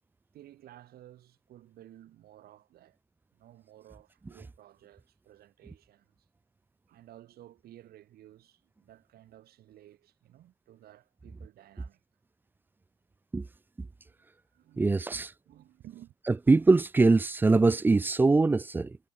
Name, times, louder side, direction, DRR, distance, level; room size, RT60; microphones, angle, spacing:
voice 1, 0.3-3.0 3.3-6.3 6.9-12.0 14.0-14.3 14.5-16.1, right 13 dB, 65° right, 2.8 m, -55 dB
voice 2, 14.8-15.3 16.5-19.0, right 3 dB, 10° right, 0.3 m, -22 dB
cardioid pair, 110°, 17 cm